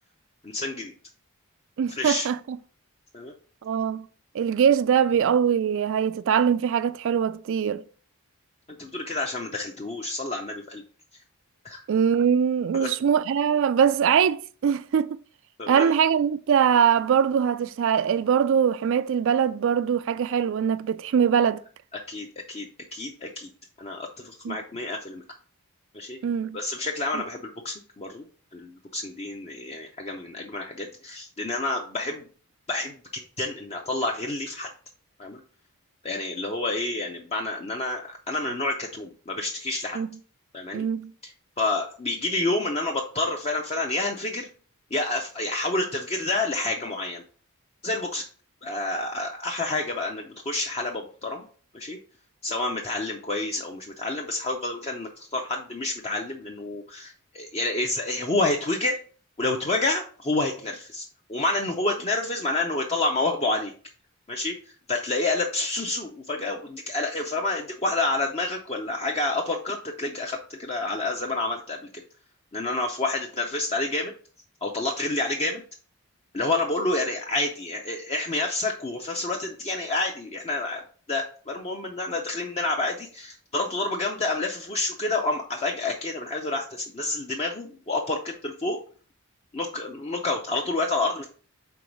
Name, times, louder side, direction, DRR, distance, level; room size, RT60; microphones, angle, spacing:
voice 1, 0.4-0.9 1.9-2.3 3.1-3.3 8.8-10.8 11.6-11.8 12.7-12.9 15.6-15.9 22.1-23.5 23.8-25.2 25.9-26.2 26.5-28.2 28.5-32.2 32.7-34.7 35.2-35.4 36.0-40.0 40.5-40.9 41.2-41.3 41.6-44.5 44.9-47.2 47.8-48.2 48.6-51.5 51.7-52.0 52.4-59.0 59.4-63.7 64.3-64.6 64.9-71.8 72.5-74.1 74.6-75.6 76.3-80.8 81.1-88.8 89.5-91.2, left 2 dB, 25° left, 0.5 m, -29 dB
voice 2, 1.8-2.6 3.6-4.1 4.3-7.8 11.9-15.2 15.7-21.6 24.4-24.6 26.2-26.6 27.1-27.2 39.9-40.1 40.7-41.1, right 7 dB, 60° right, 0.3 m, -22 dB
4.6 x 3.9 x 5.2 m
head